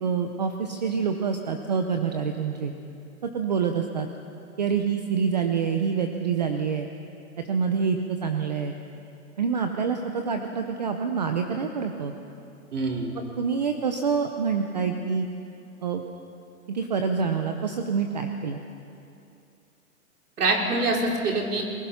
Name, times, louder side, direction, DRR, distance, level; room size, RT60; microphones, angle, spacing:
voice 1, 0.0-2.7 3.2-4.1 4.6-6.9 7.5-8.8 9.4-12.1 13.4-15.3 15.8-16.0 16.7-18.6, right 6 dB, 30° right, 5 dB, 0.8 m, -26 dB
voice 2, 12.7-13.1 20.4-21.6, right 2 dB, 80° right, 0 dB, 5.2 m, -25 dB
29.0 x 20.5 x 5.8 m, 2.6 s
hypercardioid pair, 180°, 45 cm